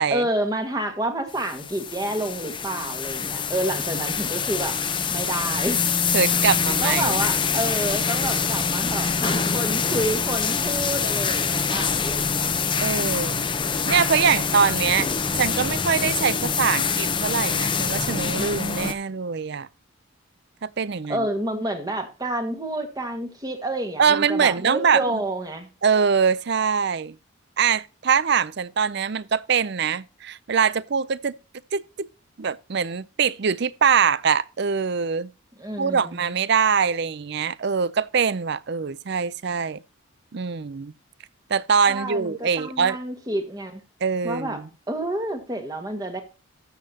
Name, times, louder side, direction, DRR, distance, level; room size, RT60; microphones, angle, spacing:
voice 1, 0.1-4.8 5.1-5.8 6.8-12.5 21.1-25.7 35.6-36.2 41.9-43.8 44.2-44.6 44.9-46.2, right 1 dB, 15° right, 1.6 m, -29 dB
sound 1, 1.3-18.9, left 6 dB, 25° left, 0.8 m, -25 dB
voice 2, 6.1-7.2 12.8-15.1 15.4-19.7 20.6-21.3 24.0-25.2 25.8-27.2 27.6-31.3 31.7-32.1 32.4-35.3 35.8-39.8 40.3-40.9 41.5-43.0 44.0-44.7, right 6 dB, 50° right, 0.5 m, -23 dB
13.0 x 7.6 x 2.8 m
head